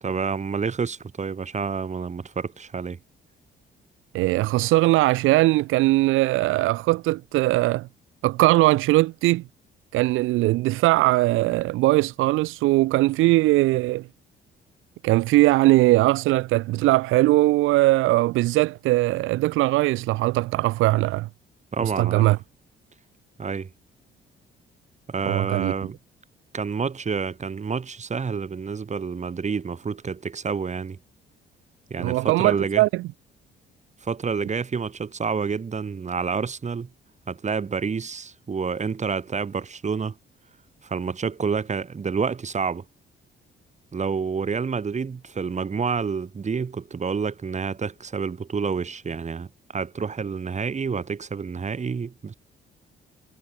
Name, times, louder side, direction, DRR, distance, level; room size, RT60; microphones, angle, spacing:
voice 1, 0.0-3.0 21.7-22.3 23.4-23.7 25.1-26.0 26.5-31.0 31.9-32.8 34.0-36.9 37.3-40.2 40.8-42.8 43.9-49.5 49.7-52.3, right 5 dB, 35° right, 2.8 m, -28 dB
voice 2, 4.1-7.9 8.2-9.4 9.9-14.1 15.0-21.3 21.8-22.4 25.3-25.7 32.0-33.0, right 18 dB, 90° right, 0.5 m, -20 dB
cardioid pair, 90°, 20 cm